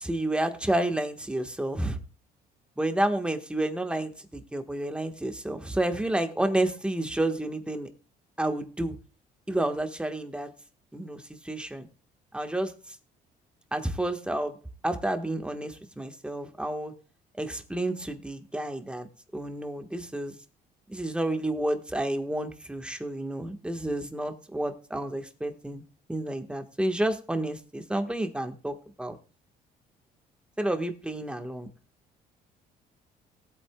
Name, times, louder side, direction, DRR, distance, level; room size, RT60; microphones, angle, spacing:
voice 1, 0.0-2.0 2.8-7.9 8.4-9.0 9.5-10.5 10.9-11.9 12.3-12.9 13.7-14.6 14.8-16.9 17.4-19.1 19.3-20.4 20.9-25.8 26.1-29.2 30.6-31.7, right 1 dB, 5° right, 6 dB, 1.4 m, -30 dB
18.5 x 8.5 x 2.3 m, 0.36 s
cardioid pair, 110°, 17 cm